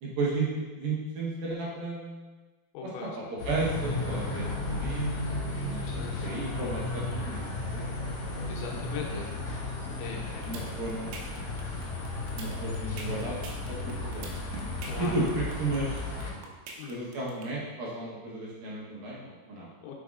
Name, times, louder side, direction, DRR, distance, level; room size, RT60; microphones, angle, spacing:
voice 1, 0.0-2.3 3.0-5.4 5.6-5.9 6.2-8.5 8.7-9.2 10.5-11.2 12.4-13.3 13.7-14.3 15.0-16.0 16.3-16.5 16.9-19.7, right 2 dB, 70° right, -6 dB, 2.4 m, -34 dB
voice 2, 2.7-3.2 4.1-4.6 5.8-6.4 8.5-9.3 10.0-10.4 14.8-15.4 16.8-17.1 19.8-19.9, left 6 dB, 80° left, -1 dB, 3.3 m, -41 dB
sound 1, 3.4-16.3, left 2 dB, 55° left, 2.1 m, -34 dB
sound 2, 10.2-17.4, right 4 dB, 90° right, 3.3 m, -43 dB
7.9 x 6.1 x 2.4 m, 1.3 s
omnidirectional pair, 5.3 m